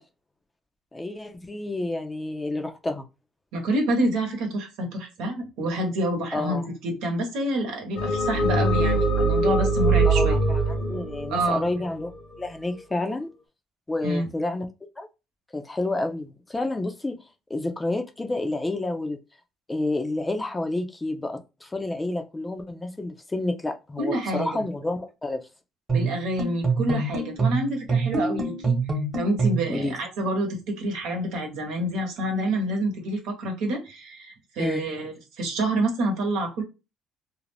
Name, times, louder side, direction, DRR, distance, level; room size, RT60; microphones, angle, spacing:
voice 1, 0.9-3.0 6.3-6.7 10.0-12.1 12.4-13.3 13.9-14.7 15.0-15.1 15.5-17.2 17.5-19.2 19.7-25.4 29.7-29.9 34.6-34.9, left 2 dB, 15° left, 6 dB, 0.5 m, -29 dB
voice 2, 3.5-10.4 11.3-11.6 14.0-14.3 24.0-24.6 25.9-28.7 29.1-36.6, right 1 dB, 85° right, 2 dB, 1.0 m, -28 dB
sound 1, 8.0-12.3, right 2 dB, 50° left, 0.8 m, -22 dB
sound 2, 25.9-29.7, right 4 dB, 30° right, 1.0 m, -25 dB
2.5 x 2.0 x 3.2 m, 0.27 s
cardioid pair, 110°, 0 cm